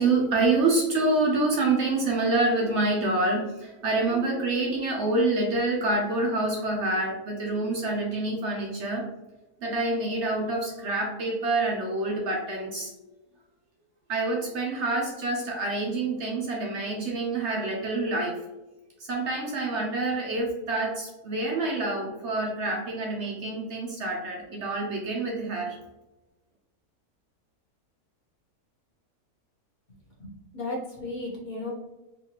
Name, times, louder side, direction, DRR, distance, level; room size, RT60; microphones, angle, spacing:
voice 1, 0.0-9.1 9.6-12.9 14.1-18.4 19.0-25.8, right 2 dB, 60° right, -1 dB, 0.8 m, -27 dB
voice 2, 30.2-31.7, left 2 dB, 35° left, -4 dB, 0.9 m, -35 dB
4.0 x 2.5 x 2.8 m, 1.0 s
omnidirectional pair, 1.6 m